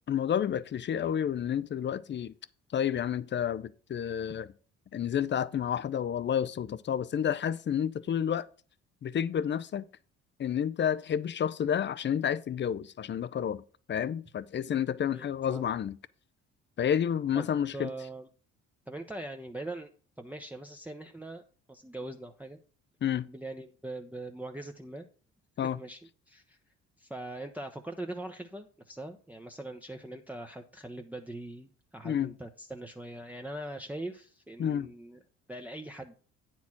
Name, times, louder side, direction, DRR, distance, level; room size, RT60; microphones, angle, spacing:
voice 1, 0.1-2.3 2.7-4.5 4.9-8.5 9.0-9.9 10.4-13.6 13.9-16.0 16.8-17.9 23.0-23.3 25.6-25.8 32.0-32.3 34.6-34.9, left 9 dB, 35° left, 0.6 m, -30 dB
voice 2, 15.1-15.7 17.3-18.3 18.9-19.9 20.2-21.4 21.7-22.6 23.2-25.0 25.8-26.0 26.3-26.6 27.0-35.2 35.5-36.1, right 1 dB, 5° right, 0.8 m, -41 dB
9.3 x 4.5 x 5.8 m
hypercardioid pair, 55°, 33 cm